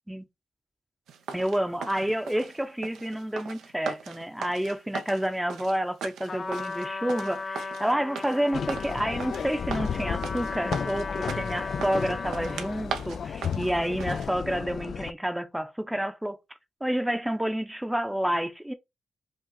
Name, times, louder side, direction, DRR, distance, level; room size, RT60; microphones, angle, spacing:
sound 1, 1.1-14.3, right 7 dB, 85° right, 0.8 m, -39 dB
voice 1, 1.3-16.4 16.8-18.7, equal, 5° right, 0.7 m, -29 dB
Trumpet, 6.3-12.9, left 4 dB, 40° left, 0.8 m, -36 dB
sound 2, 8.5-15.1, left 7 dB, 60° left, 0.3 m, -33 dB
5.3 x 2.5 x 3.9 m
cardioid pair, 80°, 0 cm